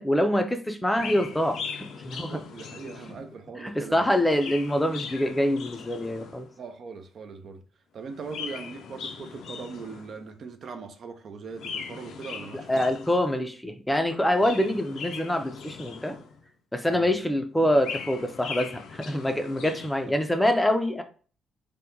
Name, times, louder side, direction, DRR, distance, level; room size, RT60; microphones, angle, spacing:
voice 1, 0.0-2.3 3.6-6.5 12.7-16.2 16.7-21.0, left 1 dB, 10° left, 0.4 m, -25 dB
Chirp tweet, 0.9-3.4 4.1-6.5 8.1-10.3 11.5-13.4 14.2-16.5 17.5-20.1, left 6 dB, 75° left, 0.4 m, -40 dB
voice 2, 2.1-4.1 6.6-7.6 7.9-12.9 16.9-17.1 20.1-20.2, right 5 dB, 55° right, 0.5 m, -40 dB
2.9 x 2.2 x 3.5 m
cardioid pair, 90°, 0 cm